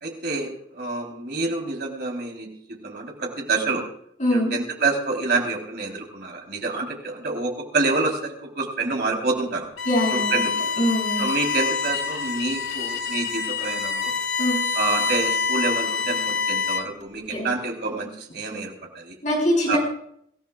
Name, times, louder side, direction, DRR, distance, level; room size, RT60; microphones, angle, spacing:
voice 1, 0.0-3.9 4.3-9.7 10.1-10.5 11.2-14.1 14.7-19.2 19.7-19.8, right 3 dB, 50° right, 0 dB, 3.6 m, -27 dB
voice 2, 4.2-4.5 9.9-10.4 10.8-11.2 14.4-14.6 17.3-17.5 19.2-19.8, equal, 40° left, -3 dB, 7.8 m, -22 dB
Bowed string instrument, 9.8-17.0, left 5 dB, 80° left, 1.1 m, -26 dB
25.0 x 14.5 x 2.4 m, 0.67 s
head